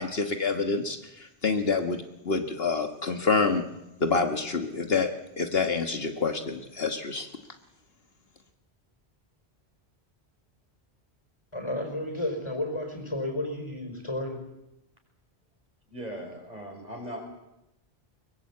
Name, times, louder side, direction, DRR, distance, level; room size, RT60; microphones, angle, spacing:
voice 1, 0.0-3.6 4.0-5.1 5.4-7.3, left 4 dB, 65° left, 6 dB, 1.6 m, -27 dB
voice 2, 11.5-14.4, left 1 dB, 25° left, 3 dB, 4.9 m, -32 dB
voice 3, 15.9-17.2, equal, 40° right, 1 dB, 5.8 m, -39 dB
22.5 x 19.5 x 8.5 m, 0.90 s
omnidirectional pair, 1.1 m